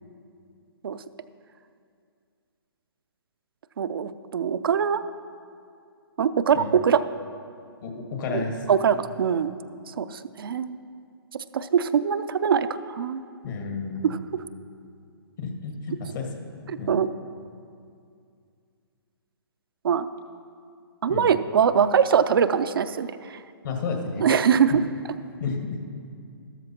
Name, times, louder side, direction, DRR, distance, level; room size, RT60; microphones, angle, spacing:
voice 1, 3.8-5.0 6.2-7.0 8.3-9.6 10.0-10.8 11.5-12.7 13.0-13.2 14.0-14.2 16.7-17.1 19.8-20.1 21.0-23.4 24.2-24.8, right 7 dB, 60° right, 11 dB, 0.5 m, -22 dB
voice 2, 7.8-8.6 13.4-14.1 15.4-16.5 16.8-17.0 21.1-21.3 23.6-24.6 25.4-25.8, left 4 dB, 50° left, 2 dB, 1.8 m, -32 dB
13.0 x 13.0 x 2.9 m, 2.4 s
figure-of-eight pair, 135°, 13 cm